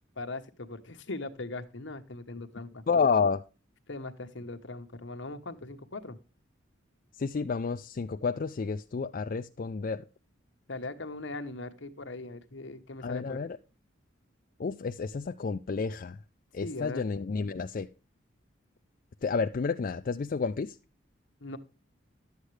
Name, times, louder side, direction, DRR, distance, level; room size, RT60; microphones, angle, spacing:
voice 1, 0.2-2.8 3.9-6.2 10.7-13.4 16.6-17.0 21.4-21.6, left 2 dB, 65° left, 1.1 m, -40 dB
voice 2, 2.9-3.4 7.2-10.0 13.0-13.6 14.6-16.2 16.5-17.9 19.2-20.8, left 5 dB, 45° left, 0.4 m, -30 dB
11.5 x 8.1 x 3.2 m
head